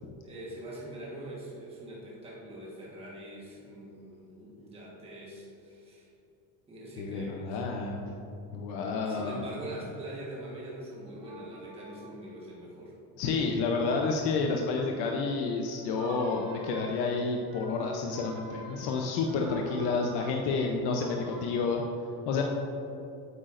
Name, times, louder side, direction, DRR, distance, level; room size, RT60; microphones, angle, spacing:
voice 1, 0.2-6.1 6.7-7.7 9.0-13.0, right 1 dB, 15° right, -6 dB, 1.4 m, -43 dB
voice 2, 7.0-8.0 8.5-9.5 13.2-21.8 22.3-22.4, left 4 dB, 90° left, 1 dB, 0.8 m, -30 dB
sound 1, 11.1-12.3 13.4-13.7 15.7-21.4, right 1 dB, 65° right, 1.7 m, -48 dB
8.9 x 8.5 x 2.6 m, 2.8 s
cardioid pair, 165°, 38 cm